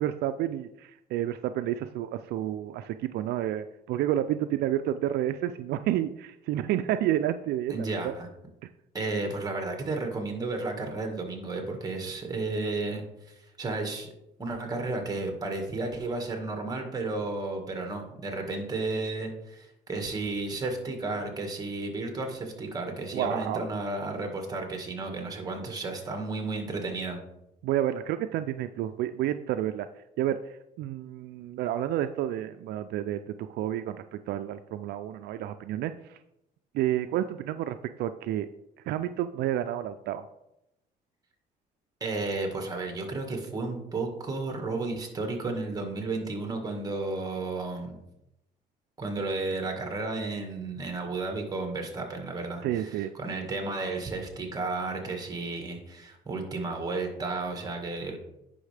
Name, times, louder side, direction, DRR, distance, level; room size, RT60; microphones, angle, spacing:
voice 1, 0.0-8.1 23.1-23.7 27.6-29.9 30.2-36.2 36.7-38.5 38.9-40.2 52.6-53.1, right 12 dB, 75° right, 10 dB, 0.4 m, -30 dB
voice 2, 7.7-8.3 8.9-14.1 14.4-27.2 42.0-48.0 49.0-58.2, right 3 dB, 20° right, 3 dB, 1.8 m, -33 dB
9.7 x 5.6 x 3.4 m, 0.86 s
cardioid pair, 110°, 17 cm